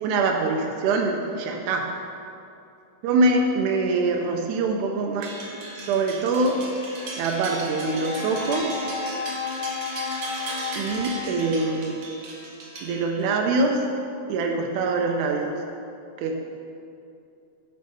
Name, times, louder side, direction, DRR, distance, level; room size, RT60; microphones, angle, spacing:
voice 1, 0.0-1.8 3.0-5.3 5.8-6.6 7.2-8.7 10.8-12.0 12.8-13.8 14.3-15.5 16.2-16.5, right 3 dB, 85° right, 2 dB, 1.7 m, -24 dB
sound 1, 5.2-13.4, right 2 dB, 65° right, 1.3 m, -37 dB
Brass instrument, 7.5-11.9, left 5 dB, 80° left, 1.8 m, -33 dB
8.0 x 5.3 x 5.4 m, 2.6 s
omnidirectional pair, 4.1 m